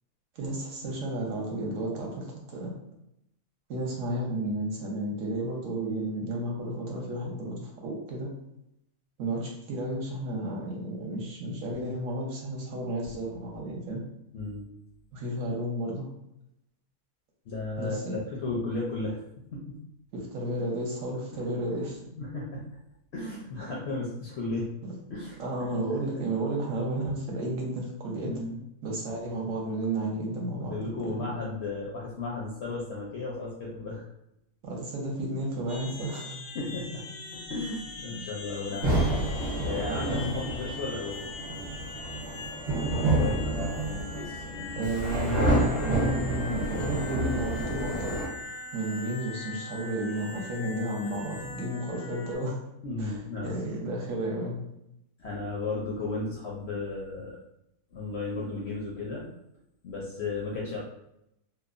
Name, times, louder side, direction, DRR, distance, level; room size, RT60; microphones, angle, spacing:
voice 1, 0.4-2.7 3.7-8.3 9.2-14.0 15.1-16.1 17.8-18.2 20.1-22.0 24.8-24.9 25.4-28.3 28.8-30.7 31.0-31.1 34.6-36.4 40.1-40.3 44.7-45.5 45.9-48.3 48.7-52.6 53.0-54.6, right 1 dB, 70° right, -1 dB, 1.0 m, -32 dB
voice 2, 14.3-14.7 17.5-19.2 19.5-19.8 21.3-21.4 22.2-22.6 23.1-24.7 25.1-25.8 28.3-28.6 30.6-34.1 36.5-37.0 37.3-39.0 39.6-41.3 42.3-42.7 43.0-44.9 46.6-47.0 52.8-53.6 55.2-57.4 57.9-59.3 59.8-60.8, left 3 dB, 70° left, -4 dB, 0.6 m, -35 dB
sound 1, 35.7-52.4, left 3 dB, 85° left, 1.1 m, -42 dB
sound 2, 38.8-48.3, right 1 dB, 50° right, 0.9 m, -29 dB
2.9 x 2.0 x 2.4 m, 0.81 s
omnidirectional pair, 1.5 m